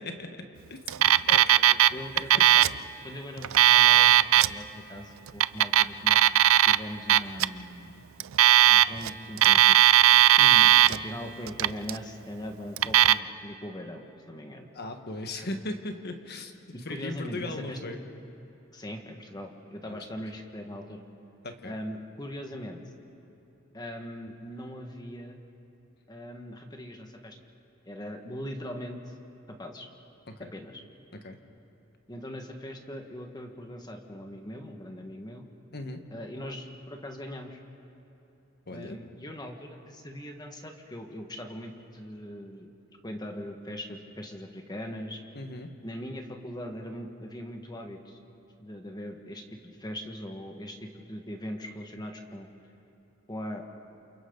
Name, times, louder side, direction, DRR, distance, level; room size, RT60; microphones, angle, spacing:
voice 1, 0.0-2.0 10.4-10.7 14.7-16.5 16.8-18.0 19.8-20.0 21.4-21.8 30.3-30.5 31.1-31.4 35.7-36.0 38.7-39.0 45.3-45.7, left 2 dB, 50° left, 5 dB, 1.5 m, -38 dB
Alarm, 0.9-1.9 2.2-2.8 3.4-4.5 5.3-6.8 7.1-7.5 8.2-9.1 9.4-11.0 11.5-12.0 12.8-13.1, right 13 dB, 70° right, 0.4 m, -18 dB
voice 2, 1.9-2.7 3.0-6.3 6.6-8.0 8.7-10.0 10.9-14.7 16.7-17.9 18.7-21.0 21.6-22.8 23.7-25.4 26.1-27.4 27.8-29.1 29.5-29.9 30.4-30.8 32.1-35.4 36.1-37.6 38.7-42.7 43.0-45.2 45.8-48.2 48.6-52.5 53.3-53.6, equal, 20° left, 3 dB, 1.7 m, -40 dB
28.5 x 28.0 x 4.0 m, 2.9 s
head